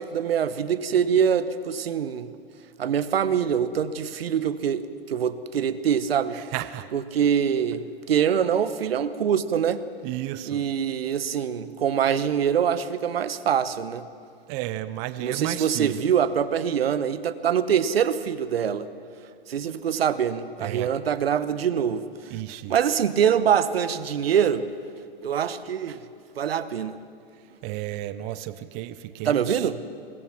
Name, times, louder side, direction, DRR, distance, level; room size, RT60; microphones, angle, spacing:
voice 1, 0.0-2.3 2.8-6.4 6.9-9.8 10.4-14.0 15.2-18.9 19.5-22.1 22.7-24.7 25.2-26.0 26.4-27.0 29.2-29.8, right 8 dB, 75° right, 14 dB, 1.2 m, -24 dB
voice 2, 6.3-6.9 10.0-10.6 14.5-16.0 20.6-20.9 22.3-22.7 27.6-29.7, right 15 dB, 25° right, 14 dB, 0.5 m, -33 dB
24.0 x 21.0 x 6.0 m, 2.4 s
hypercardioid pair, 140°, 30 cm